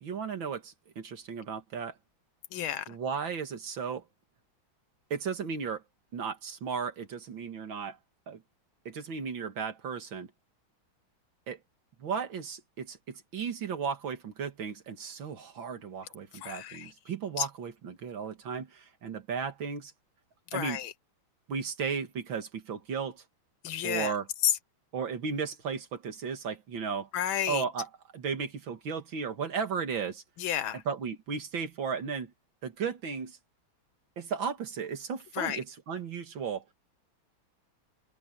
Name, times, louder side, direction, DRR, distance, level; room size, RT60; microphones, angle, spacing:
voice 1, 0.0-1.9 2.9-4.0 5.1-5.8 6.1-8.0 8.3-8.4 8.9-10.3 11.5-11.6 12.0-19.9 20.5-20.8 21.5-23.2 23.8-24.3 24.9-27.1 27.5-30.2 30.9-32.3 32.6-33.4 34.2-36.7, right 6 dB, 70° right, 2.6 m, -35 dB
voice 2, 2.5-2.8 16.4-16.9 17.4-17.5 20.5-20.9 23.6-24.1 24.4-24.5 27.1-27.6 30.4-30.8 35.4-35.6, left 10 dB, 75° left, 1.8 m, -31 dB
open air
omnidirectional pair, 2.2 m